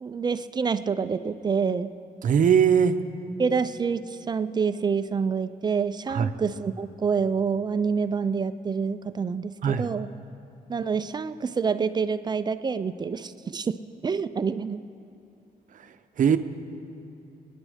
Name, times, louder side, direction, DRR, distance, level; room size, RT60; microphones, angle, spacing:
voice 1, 0.0-1.9 3.4-10.1 10.7-13.8 14.0-14.8, right 5 dB, 25° right, 12 dB, 0.4 m, -27 dB
voice 2, 2.2-3.0 6.1-6.3 9.6-9.9 16.2-16.4, right 7 dB, 55° right, 10 dB, 0.7 m, -20 dB
26.5 x 10.0 x 5.0 m, 2.7 s
wide cardioid pair, 160°, 16 cm